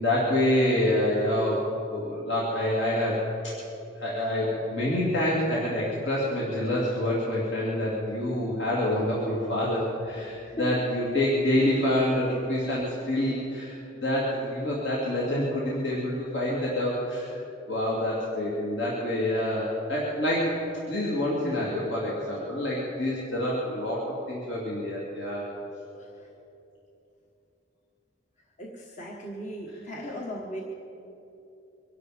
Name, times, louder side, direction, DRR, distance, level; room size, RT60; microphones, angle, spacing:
voice 1, 0.0-1.6 1.9-3.2 3.4-3.5 4.0-17.4 17.7-20.5 20.9-25.4 29.7-30.1, left 1 dB, 65° left, -6 dB, 2.7 m, -27 dB
voice 2, 28.6-30.6, left 1 dB, 35° left, -2 dB, 1.3 m, -36 dB
24.5 x 11.5 x 5.1 m, 2.9 s
head